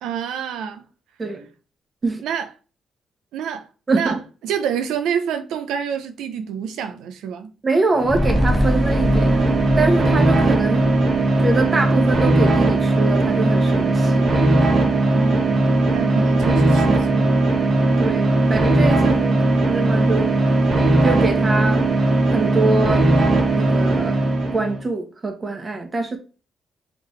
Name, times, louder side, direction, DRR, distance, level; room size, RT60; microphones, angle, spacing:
voice 1, 0.0-0.8 2.2-2.5 3.3-4.2 4.4-7.5 14.8-17.6, right 8 dB, 90° right, 0.6 m, -28 dB
voice 2, 3.9-4.2 7.6-9.5 9.8-10.9 11.4-14.6 18.0-19.4 19.6-20.3 21.0-21.8 22.3-23.0 23.6-24.2 24.5-26.2, right 3 dB, 30° right, 1.1 m, -24 dB
sound 1, 7.9-24.8, right 2 dB, 55° right, 1.4 m, -18 dB
sound 2, 8.1-12.6 12.9-13.0, left 1 dB, 10° left, 0.5 m, -25 dB
3.8 x 3.6 x 3.2 m
cardioid pair, 80°, 0 cm